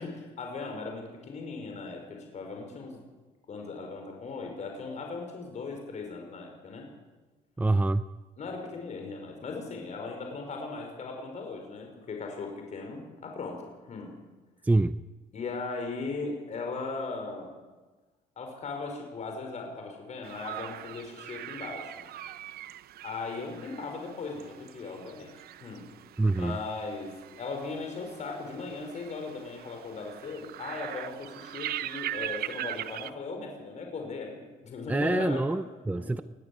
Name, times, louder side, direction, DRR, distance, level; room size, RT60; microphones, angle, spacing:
voice 1, 0.0-3.0 3.5-6.9 8.4-14.1 15.3-17.6 18.4-22.1 23.0-25.3 25.6-25.9 26.3-27.1 27.4-35.6 35.9-36.1, left 3 dB, 45° left, 2 dB, 5.3 m, -38 dB
voice 2, 7.6-8.1 14.6-14.9 26.2-26.6 34.9-36.2, right 2 dB, 10° right, 13 dB, 0.6 m, -26 dB
sound 1, 20.2-33.1, right 12 dB, 65° right, 0.8 m, -41 dB
21.0 x 14.0 x 9.8 m, 1.2 s
cardioid pair, 110°, 17 cm